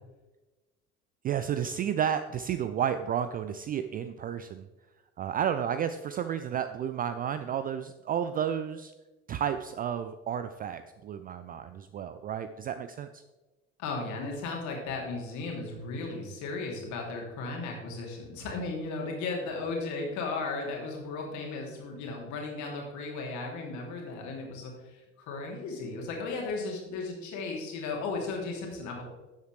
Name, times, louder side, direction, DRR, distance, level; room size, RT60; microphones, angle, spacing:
voice 1, 1.2-4.7 5.2-8.9 9.3-13.2, right 9 dB, 25° right, 10 dB, 0.4 m, -32 dB
voice 2, 13.8-29.0, left 3 dB, 50° left, 0 dB, 2.7 m, -35 dB
12.0 x 7.9 x 3.3 m, 1.1 s
figure-of-eight pair, 60°, 37 cm